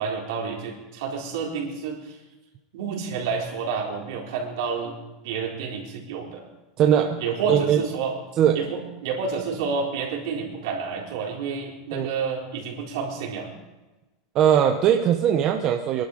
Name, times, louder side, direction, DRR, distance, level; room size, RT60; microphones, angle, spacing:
voice 1, 0.0-2.2 2.7-5.0 5.2-6.4 7.1-8.2 8.5-13.5, right 5 dB, 65° right, -2 dB, 4.3 m, -29 dB
voice 2, 6.8-7.2 7.5-7.8 8.4-8.6 11.9-12.1 14.3-16.0, right 9 dB, 30° right, 5 dB, 0.7 m, -20 dB
23.5 x 12.0 x 5.0 m, 1.1 s
supercardioid pair, 175°, 2 cm